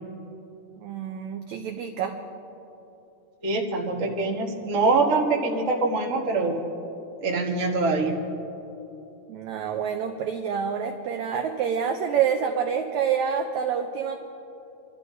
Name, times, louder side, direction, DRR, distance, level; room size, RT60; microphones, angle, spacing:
voice 1, 0.8-2.2 9.3-14.2, right 7 dB, 85° right, 4 dB, 1.6 m, -27 dB
voice 2, 3.4-6.6 7.2-8.2, right 3 dB, 65° right, -1 dB, 0.7 m, -24 dB
29.5 x 13.0 x 2.7 m, 2.9 s
omnidirectional pair, 4.0 m